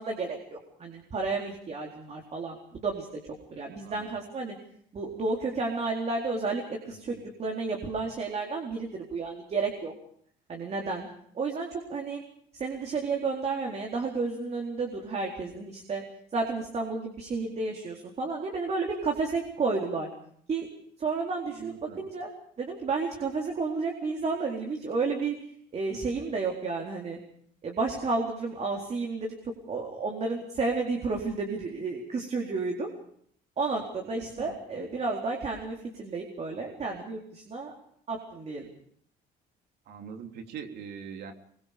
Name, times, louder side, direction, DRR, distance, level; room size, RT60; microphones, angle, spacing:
voice 1, 0.0-3.1 3.5-4.6 4.9-9.9 10.5-11.1 11.3-12.2 12.5-16.0 16.3-20.1 20.5-20.7 21.0-22.3 22.6-25.4 25.7-27.2 27.6-29.3 29.7-32.9 33.6-37.7 38.1-38.7, right 4 dB, 40° right, 1 dB, 4.2 m, -31 dB
voice 2, 3.7-4.1 6.8-7.2 21.5-22.1 25.9-26.0 34.2-34.6 39.9-41.3, right 7 dB, 75° right, 5 dB, 3.5 m, -43 dB
24.0 x 23.0 x 5.2 m, 0.64 s
cardioid pair, 110°, 17 cm